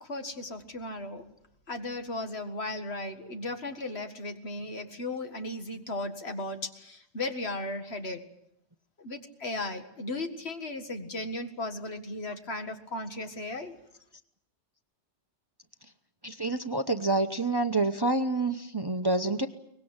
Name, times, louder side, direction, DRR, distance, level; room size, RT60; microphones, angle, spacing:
voice 1, 0.0-1.3 1.7-8.2 9.0-13.7, left 2 dB, 60° left, 6 dB, 2.1 m, -36 dB
voice 2, 16.2-19.5, right 2 dB, 20° right, 9 dB, 0.9 m, -27 dB
23.5 x 20.0 x 8.8 m, 0.76 s
omnidirectional pair, 1.2 m